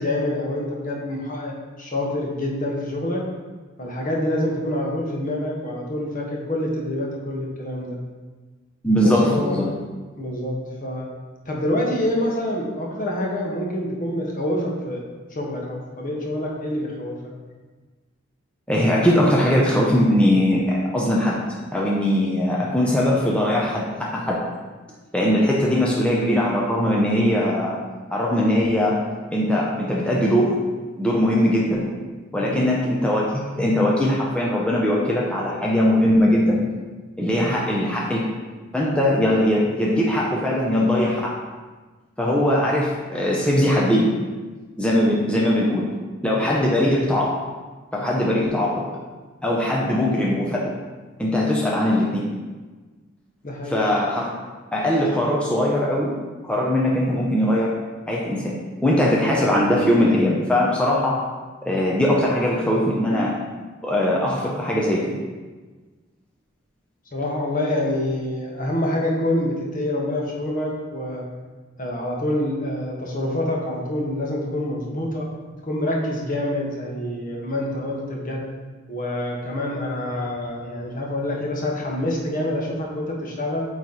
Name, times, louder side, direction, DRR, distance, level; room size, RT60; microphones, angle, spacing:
voice 1, 0.0-3.2 3.8-8.0 9.0-9.6 10.2-11.1 11.4-15.0 15.3-17.3 25.8-25.9 32.4-32.7 37.3-37.6 46.3-46.6 49.8-49.9 53.4-53.8 67.1-71.2 71.8-75.3 75.6-78.4 78.9-83.6, left 1 dB, 45° left, -1 dB, 1.1 m, -26 dB
voice 2, 8.8-9.7 18.7-21.4 21.7-24.4 25.1-27.8 28.1-29.0 29.3-30.5 31.0-31.9 32.3-36.6 37.2-38.2 38.7-41.4 42.2-44.1 44.8-45.9 46.2-47.3 47.9-48.9 49.4-50.6 51.2-52.2 53.7-54.3 54.7-56.1 56.4-57.7 58.1-61.2 61.6-63.3 63.8-65.1, left 1 dB, 5° left, -4 dB, 0.6 m, -20 dB
8.5 x 3.1 x 4.1 m, 1.3 s
head